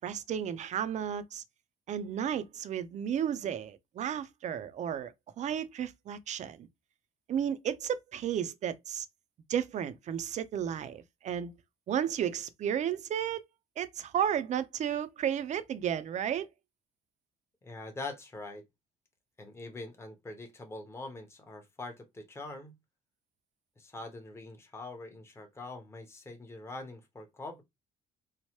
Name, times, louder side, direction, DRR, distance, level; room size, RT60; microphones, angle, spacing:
voice 1, 0.0-1.4 1.9-6.7 7.3-9.1 9.5-11.5 11.9-13.4 13.8-16.5, right 9 dB, 45° right, 0.4 m, -33 dB
voice 2, 17.6-18.7 19.4-22.7 23.8-27.6, left 2 dB, 15° left, 0.8 m, -43 dB
3.1 x 2.0 x 2.9 m
cardioid pair, 110°, 17 cm